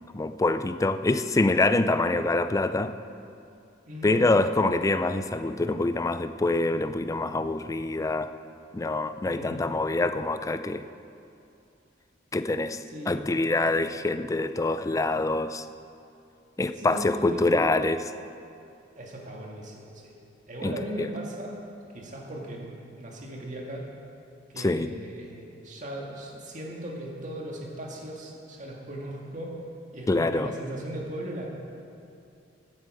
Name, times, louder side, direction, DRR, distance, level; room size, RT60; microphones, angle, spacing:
voice 1, 0.1-2.9 4.0-8.3 8.7-10.8 12.3-15.7 16.6-18.1 20.6-21.1 24.6-24.9 30.1-30.5, left 2 dB, 15° left, 11 dB, 0.4 m, -25 dB
voice 2, 3.9-4.2 9.2-9.6 12.9-13.2 16.8-17.5 19.0-20.1 20.5-21.6 21.9-23.8 24.5-29.5 29.9-31.5, right 1 dB, 40° right, -1 dB, 1.9 m, -38 dB
14.5 x 9.6 x 4.9 m, 2.6 s
head